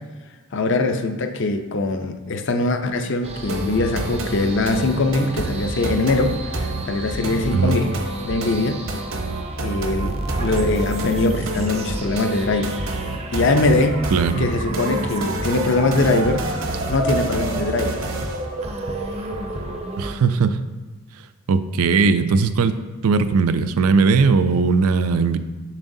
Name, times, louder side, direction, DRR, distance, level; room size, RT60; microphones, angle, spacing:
voice 1, 0.5-7.9 8.2-8.8 9.6-12.8 13.3-14.0 14.4-16.5 16.9-18.0, left 2 dB, 55° left, 6 dB, 0.5 m, -22 dB
sound 1, 3.2-20.1, right 1 dB, 30° right, 0.5 m, -30 dB
sound 2, 3.5-18.5, right 2 dB, 60° right, 0.8 m, -30 dB
voice 2, 14.1-14.5 20.0-20.6 21.5-25.4, right 4 dB, 80° right, 11 dB, 0.4 m, -18 dB
7.3 x 6.2 x 2.6 m, 1.3 s
head